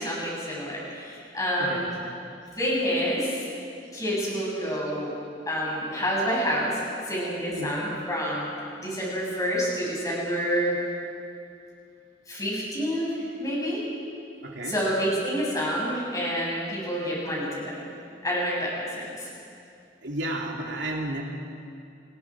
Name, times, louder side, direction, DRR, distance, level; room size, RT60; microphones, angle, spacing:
voice 1, 0.0-1.8 2.6-3.4 3.9-5.1 5.5-8.5 8.8-10.8 12.3-13.1 13.4-13.8 14.6-17.7 18.2-19.3, equal, 20° left, -4 dB, 6.6 m, -28 dB
voice 2, 1.6-2.1 7.5-7.7 14.4-14.8 20.0-21.2, right 1 dB, 75° right, 0 dB, 2.7 m, -32 dB
29.5 x 21.0 x 4.8 m, 2.5 s
head